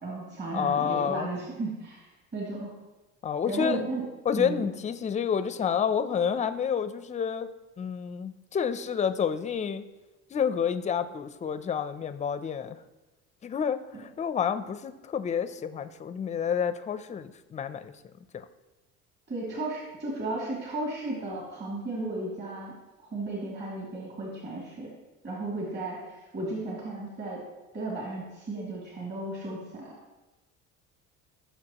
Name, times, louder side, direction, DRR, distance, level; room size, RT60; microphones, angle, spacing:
voice 1, 0.0-2.7 3.5-4.1 4.4-4.7 19.3-22.7 23.0-24.9 25.2-27.4 27.7-29.9, right 2 dB, 35° right, -5 dB, 2.6 m, -34 dB
voice 2, 0.5-1.3 3.2-3.8 4.3-7.5 7.8-9.8 10.3-12.8 13.4-17.9 18.3-18.4, left 7 dB, 25° left, 11 dB, 0.5 m, -29 dB
16.5 x 6.9 x 2.9 m, 1.1 s
cardioid pair, 135°, 31 cm